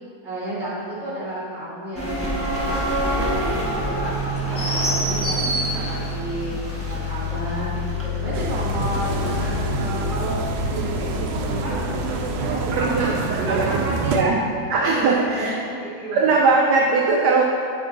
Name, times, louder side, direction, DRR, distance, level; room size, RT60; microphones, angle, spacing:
voice 1, 0.2-6.6 6.9-13.2 13.4-14.4 14.8-16.2, right 1 dB, 35° right, -7 dB, 2.6 m, -32 dB
sound 1, 1.9-12.9, left 1 dB, 10° left, 1.0 m, -26 dB
sound 2, 8.3-14.2, right 5 dB, 85° right, 1.4 m, -27 dB
voice 2, 12.7-13.7 14.1-14.4 14.7-15.5 16.1-17.4, right 4 dB, 65° right, -2 dB, 1.2 m, -20 dB
8.1 x 7.2 x 3.9 m, 2.4 s
omnidirectional pair, 2.2 m